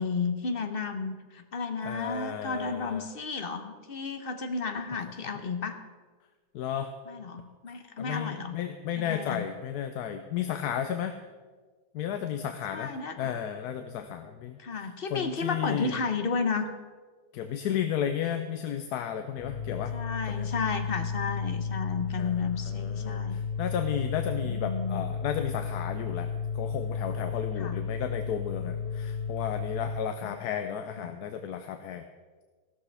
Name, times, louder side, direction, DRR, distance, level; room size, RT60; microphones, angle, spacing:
voice 1, 0.0-5.8 7.1-8.6 9.0-9.5 12.7-13.3 14.6-16.7 19.9-23.4 24.4-25.0 27.6-27.8 30.2-30.4 31.0-31.1, left 4 dB, 45° left, 7 dB, 0.9 m, -33 dB
voice 2, 1.8-3.1 6.5-6.9 8.0-11.2 11.9-16.0 17.3-20.0 20.3-20.5 22.2-32.0, left 9 dB, 80° left, 7 dB, 1.2 m, -33 dB
sound 1, 19.4-29.9, left 6 dB, 35° right, 4.0 m, -33 dB
15.0 x 13.0 x 3.4 m, 1.4 s
omnidirectional pair, 1.7 m